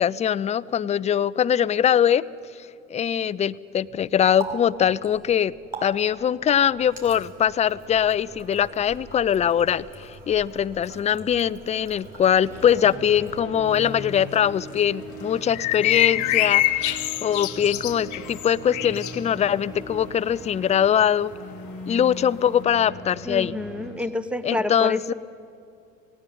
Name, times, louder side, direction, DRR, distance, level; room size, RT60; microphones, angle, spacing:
voice 1, 0.0-2.2 2.9-5.5 5.8-21.3 21.9-23.6 24.4-25.1, left 9 dB, 20° left, 17 dB, 0.4 m, -22 dB
Water tap faucet, 3.8-14.6, right 3 dB, 20° right, 6.0 m, -43 dB
sound 1, 12.4-23.9, equal, 90° right, 5.4 m, -40 dB
sound 2, 15.5-19.2, left 16 dB, 50° left, 0.9 m, -24 dB
voice 2, 23.2-25.1, left 2 dB, 5° right, 13 dB, 1.1 m, -28 dB
18.0 x 17.5 x 9.1 m, 2.5 s
hypercardioid pair, 75°, 39 cm